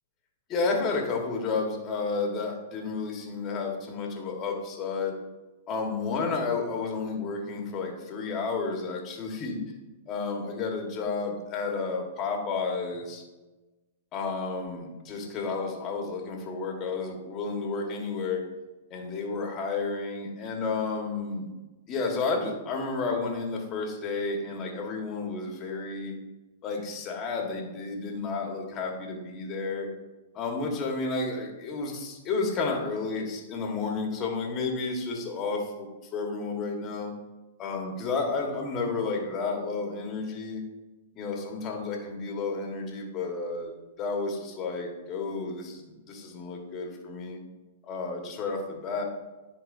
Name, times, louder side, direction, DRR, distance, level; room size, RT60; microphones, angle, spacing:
voice 1, 0.5-5.1 5.7-9.6 10.1-13.2 14.1-18.4 18.9-21.5 21.9-26.1 26.6-29.9 30.3-35.9 36.1-37.1 37.6-40.6 41.1-43.7 44.0-47.4 47.8-49.0, left 4 dB, 30° left, 1 dB, 1.5 m, -31 dB
10.0 x 4.1 x 2.7 m, 1.1 s
hypercardioid pair, 125°, 0 cm